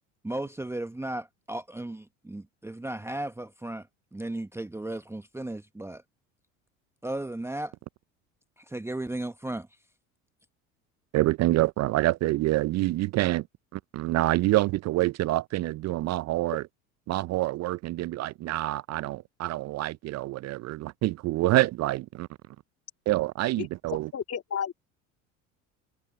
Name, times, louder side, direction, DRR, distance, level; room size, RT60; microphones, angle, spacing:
voice 1, 0.2-3.9 4.1-6.0 7.0-7.7 8.6-9.7, right 1 dB, 5° right, 1.1 m, -35 dB
voice 2, 11.1-13.5 13.7-16.6 17.1-22.3 23.1-24.1, right 17 dB, 45° right, 0.5 m, -26 dB
voice 3, 24.1-24.7, left 8 dB, 40° left, 3.5 m, -31 dB
hypercardioid pair, 75°, 39 cm